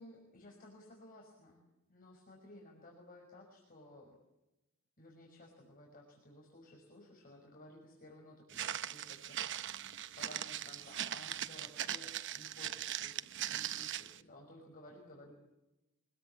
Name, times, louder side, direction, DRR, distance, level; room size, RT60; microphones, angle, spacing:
voice 1, 0.0-1.6 1.9-4.2 5.0-9.9 10.2-15.3, left 1 dB, 45° left, 0 dB, 5.7 m, -56 dB
Walk footsteps, 8.5-14.2, right 11 dB, 60° right, 0.9 m, -40 dB
25.5 x 21.5 x 8.5 m, 0.98 s
head